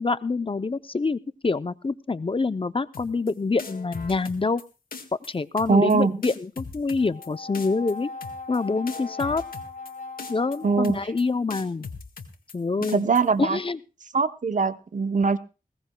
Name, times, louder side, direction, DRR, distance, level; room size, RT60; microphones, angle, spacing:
voice 1, 0.0-4.6 5.3-8.1 8.5-9.4 10.3-11.9 12.5-13.0 13.4-13.8, left 3 dB, 35° left, 0.6 m, -26 dB
sound 1, 2.9-3.3 3.6-4.6 4.9-5.3 5.6-6.0 6.2-7.3 7.5-7.9 8.2-8.6 8.9-9.9 10.2-10.6 10.8-11.2 11.5-12.5 12.8-13.2, left 4 dB, 85° left, 1.6 m, -39 dB
voice 2, 5.7-6.2 10.6-11.0 12.9-13.6 14.1-15.4, right 4 dB, 60° right, 0.8 m, -22 dB
Brass instrument, 6.9-11.3, left 3 dB, 60° left, 3.8 m, -39 dB
20.0 x 17.5 x 2.3 m
wide cardioid pair, 60°, 15 cm